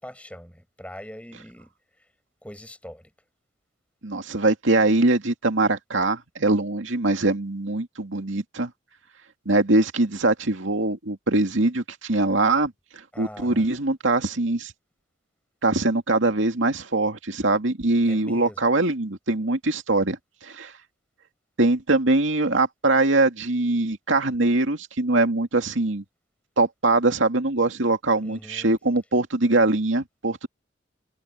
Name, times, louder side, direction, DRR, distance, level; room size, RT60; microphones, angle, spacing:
voice 1, 0.0-1.7 2.4-3.1 13.1-13.7 18.1-18.6 28.2-28.7, equal, 5° left, 5.8 m, -42 dB
voice 2, 4.0-8.7 9.5-12.7 13.2-14.7 15.6-20.7 21.6-26.0 26.6-30.5, right 2 dB, 90° right, 2.5 m, -22 dB
head